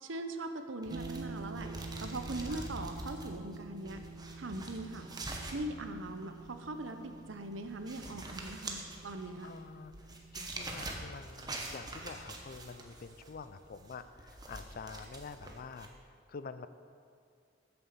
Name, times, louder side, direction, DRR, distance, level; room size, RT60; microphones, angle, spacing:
voice 1, 0.0-1.7 2.0-4.0 4.4-5.1 5.5-9.5, right 2 dB, 80° right, 7 dB, 0.8 m, -41 dB
sound 1, 0.8-15.9, right 2 dB, 20° right, 1.1 m, -45 dB
sound 2, 0.9-10.7, right 4 dB, 40° right, 0.4 m, -48 dB
voice 2, 2.5-2.9 9.4-16.7, left 4 dB, 50° left, 12 dB, 0.5 m, -47 dB
8.9 x 6.9 x 6.9 m, 2.3 s
head